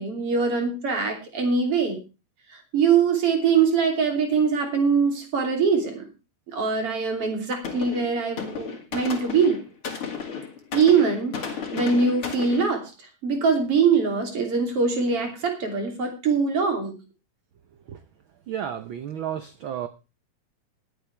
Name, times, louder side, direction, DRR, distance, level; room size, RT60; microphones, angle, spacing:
voice 1, 0.0-2.0 2.7-6.1 6.5-9.6 10.7-12.9 13.2-17.0, right 5 dB, 50° right, 3 dB, 3.9 m, -23 dB
sound 1, 7.2-7.4 7.6-12.6, left 6 dB, 50° left, 3.0 m, -33 dB
voice 2, 18.5-19.9, right 9 dB, 90° right, 11 dB, 1.1 m, -32 dB
20.5 x 8.8 x 3.4 m, 0.29 s
omnidirectional pair, 3.4 m